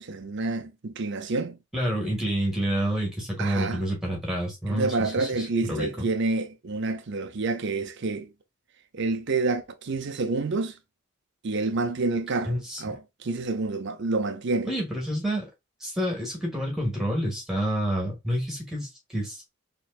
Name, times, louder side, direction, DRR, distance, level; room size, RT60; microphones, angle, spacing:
voice 1, 0.0-1.6 3.4-3.8 4.7-8.3 8.9-10.8 11.4-14.7, right 3 dB, 60° right, 0.6 m, -28 dB
voice 2, 1.7-6.1 12.5-12.8 14.6-15.5 15.8-19.5, equal, 5° right, 1.8 m, -28 dB
4.2 x 3.1 x 2.4 m
head